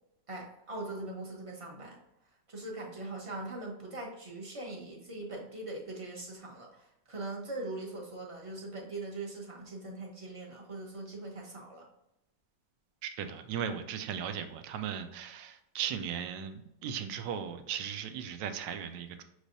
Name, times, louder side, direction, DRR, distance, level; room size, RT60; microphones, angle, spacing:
voice 1, 0.3-2.0 2.5-11.9, right 2 dB, 30° right, -2 dB, 0.7 m, -41 dB
voice 2, 13.0-19.2, right 8 dB, 85° right, 8 dB, 1.3 m, -37 dB
6.2 x 3.2 x 2.6 m, 0.86 s
omnidirectional pair, 1.9 m